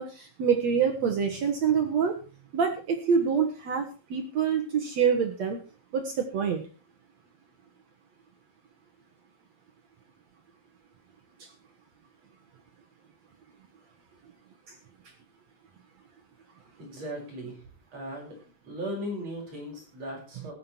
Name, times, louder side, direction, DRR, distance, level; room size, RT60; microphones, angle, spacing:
voice 1, 0.0-2.1 2.5-3.8 4.1-5.6 5.9-6.6, right 6 dB, 75° right, 3 dB, 1.5 m, -26 dB
voice 2, 16.8-18.4 18.6-20.5, equal, 35° right, -1 dB, 6.8 m, -37 dB
15.5 x 11.0 x 4.5 m, 0.34 s
omnidirectional pair, 5.5 m